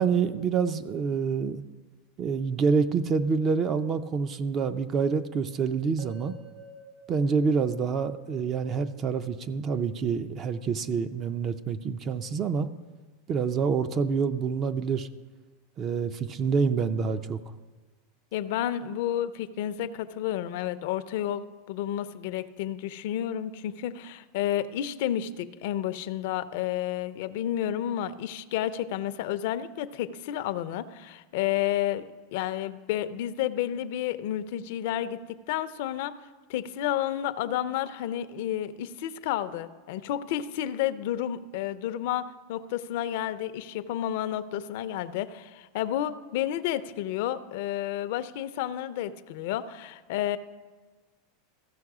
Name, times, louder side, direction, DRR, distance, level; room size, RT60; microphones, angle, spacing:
voice 1, 0.0-1.6 2.2-6.4 7.1-12.7 13.3-15.1 15.8-17.4, right 5 dB, 35° right, 10 dB, 0.4 m, -27 dB
sound 1, 6.0-10.1, right 2 dB, 65° right, 2.2 m, -51 dB
voice 2, 18.3-32.0 32.3-35.2 35.5-36.1 36.5-50.4, left 11 dB, 65° left, 13 dB, 0.5 m, -31 dB
14.5 x 6.0 x 4.8 m, 1.3 s
supercardioid pair, 130°, 0 cm